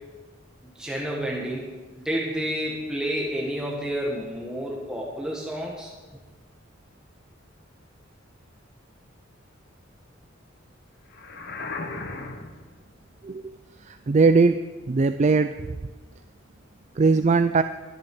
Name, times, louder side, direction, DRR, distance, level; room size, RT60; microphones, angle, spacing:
voice 1, 0.8-5.9, equal, 5° right, -3 dB, 1.6 m, -30 dB
sound 1, 11.1-12.7, left 3 dB, 55° left, 1.3 m, -35 dB
voice 2, 14.1-14.6 14.9-15.5 17.0-17.6, right 4 dB, 35° right, 10 dB, 0.4 m, -19 dB
13.0 x 10.5 x 6.1 m, 1.3 s
head